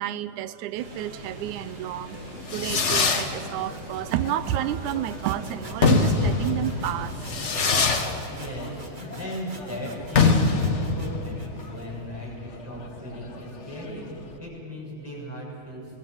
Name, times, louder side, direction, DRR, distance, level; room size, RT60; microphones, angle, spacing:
voice 1, 0.0-2.2 2.5-7.2, right 12 dB, 85° right, 15 dB, 2.1 m, -30 dB
sound 1, 0.8-8.0, right 1 dB, 65° right, 4.3 m, -41 dB
Fireworks, 2.1-14.4, left 4 dB, 60° left, 0.7 m, -25 dB
sound 2, 3.3-12.0, right 2 dB, 30° right, 0.9 m, -45 dB
voice 2, 8.3-16.0, left 1 dB, 5° right, -5 dB, 7.0 m, -37 dB
22.5 x 18.5 x 7.8 m, 2.4 s
omnidirectional pair, 3.4 m